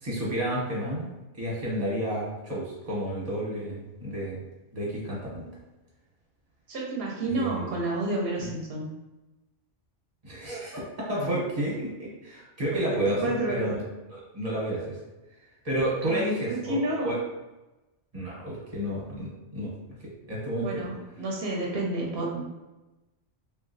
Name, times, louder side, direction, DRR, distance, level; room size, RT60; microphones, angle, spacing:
voice 1, 0.0-4.4 4.7-5.5 7.3-7.6 8.4-8.5 10.2-13.2 13.5-13.8 14.1-15.0 15.6-17.1 18.1-19.7 20.3-20.8, right 1 dB, 35° right, -5 dB, 0.9 m, -31 dB
voice 2, 6.7-8.9 12.7-13.7 16.0-17.2 20.6-22.4, right 2 dB, 60° right, -2 dB, 0.8 m, -30 dB
2.9 x 2.4 x 2.6 m, 1.0 s
omnidirectional pair, 1.3 m